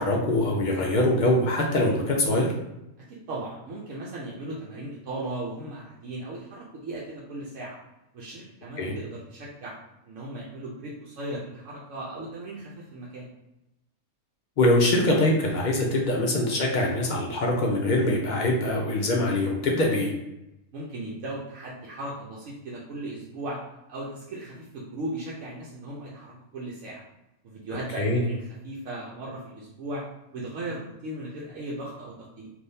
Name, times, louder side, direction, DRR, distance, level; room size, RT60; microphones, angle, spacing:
voice 1, 0.0-2.5 8.8-8.9 14.6-20.1 28.0-28.2, left 1 dB, 55° left, -1 dB, 0.5 m, -23 dB
voice 2, 3.1-7.8 8.1-9.8 10.0-13.3 20.7-23.6 23.9-27.0 27.4-30.0 30.3-32.5, right 1 dB, 75° right, -5 dB, 1.0 m, -37 dB
3.4 x 2.6 x 2.7 m, 0.90 s
omnidirectional pair, 1.3 m